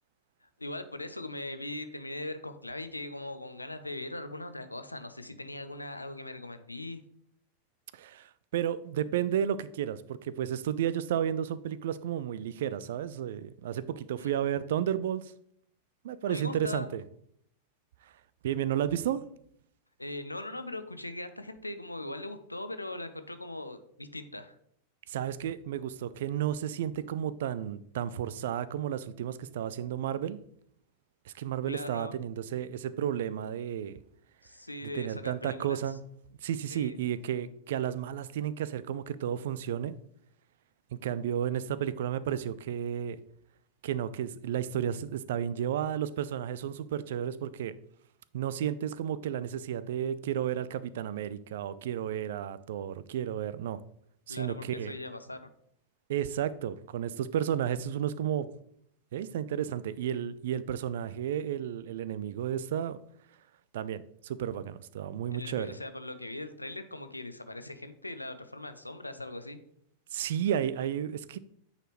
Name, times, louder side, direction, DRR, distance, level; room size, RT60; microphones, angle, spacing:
voice 1, 0.6-7.0 14.2-14.3 16.3-16.9 20.0-24.6 31.7-32.1 34.4-35.8 36.7-37.0 54.3-55.5 59.2-59.3 65.3-69.6, left 2 dB, 85° left, 0.5 m, -40 dB
voice 2, 7.9-15.3 16.0-17.0 18.4-19.2 25.1-30.4 31.3-34.0 34.9-36.0 36.4-39.9 40.9-43.2 43.8-47.8 48.3-53.8 54.3-54.9 56.1-58.5 59.1-63.0 63.7-65.7 70.1-71.4, right 10 dB, 55° right, 0.3 m, -32 dB
8.9 x 4.1 x 3.1 m
figure-of-eight pair, 90°, 0 cm